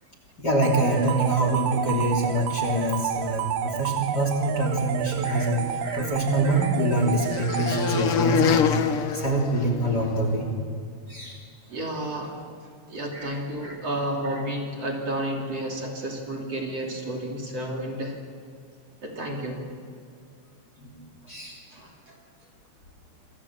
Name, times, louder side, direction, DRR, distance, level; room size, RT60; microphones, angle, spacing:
voice 1, 0.4-8.8 9.1-10.5 11.1-11.4 13.1-13.4 13.6-13.7 14.2-14.4 20.8-21.0 21.3-21.6, right 1 dB, 25° left, 3 dB, 3.4 m, -25 dB
sound 1, 0.6-8.4, right 11 dB, 75° right, 2.8 m, -30 dB
sound 2, 5.6-10.2, left 7 dB, 80° left, 1.2 m, -27 dB
voice 2, 11.7-12.3 12.9-18.1 19.0-19.6 21.7-22.2, right 1 dB, 40° right, 0 dB, 3.8 m, -31 dB
27.5 x 24.5 x 7.4 m, 2.2 s
omnidirectional pair, 4.4 m